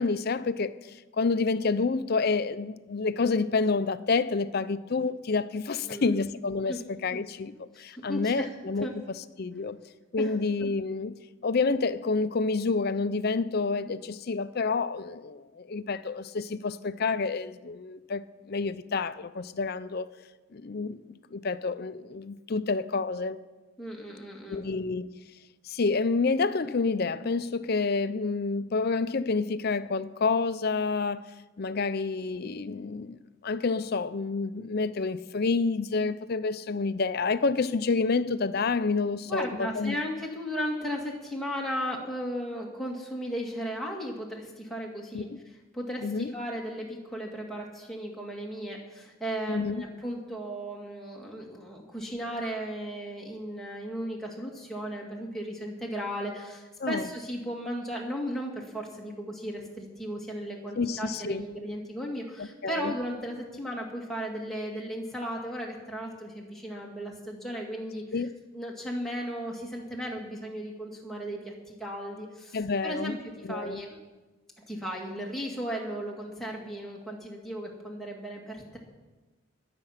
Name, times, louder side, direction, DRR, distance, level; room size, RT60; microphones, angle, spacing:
voice 1, 0.0-8.9 9.4-9.8 10.1-11.1 11.4-20.1 20.5-21.0 21.3-23.4 24.5-25.1 25.6-31.3 31.6-33.2 33.4-40.0 45.1-45.4 46.0-46.3 49.5-49.8 56.8-57.1 60.8-61.5 62.4-62.9 68.1-68.3 72.5-73.2 73.5-73.8, left 4 dB, 45° left, 0.5 m, -28 dB
voice 2, 5.8-6.2 6.7-6.8 7.7-8.5 8.8-8.9 10.2-10.4 23.8-24.6 39.3-45.3 45.7-68.3 68.5-74.0 74.7-78.8, equal, ahead, 2.0 m, -36 dB
20.5 x 7.7 x 5.8 m
head